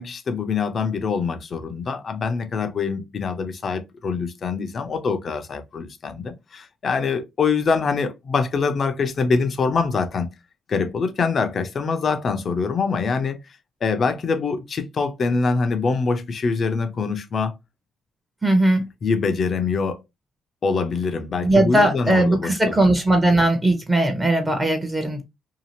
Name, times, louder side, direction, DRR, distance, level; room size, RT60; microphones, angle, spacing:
voice 1, 0.0-10.3 10.7-13.4 13.8-17.5 19.0-20.0 20.6-22.6, left 4 dB, 50° left, 0.5 m, -24 dB
voice 2, 18.4-18.9 21.4-25.2, right 1 dB, 15° right, 0.7 m, -19 dB
2.8 x 2.4 x 2.8 m
cardioid pair, 90°, 0 cm